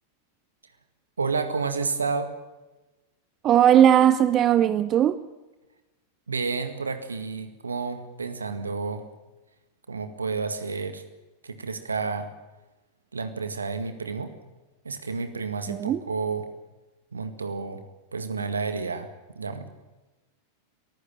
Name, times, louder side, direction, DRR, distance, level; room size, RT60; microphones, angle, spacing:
voice 1, 1.2-2.3 6.3-9.1 9.9-11.0 11.4-12.3 13.1-14.4 14.8-16.5 17.1-17.8 18.1-19.1 19.3-19.7, right 4 dB, 75° right, 9 dB, 1.9 m, -30 dB
voice 2, 3.4-5.2 15.7-16.0, right 10 dB, 30° right, 15 dB, 0.8 m, -18 dB
23.5 x 15.5 x 9.0 m, 1.1 s
figure-of-eight pair, 90°, 0 cm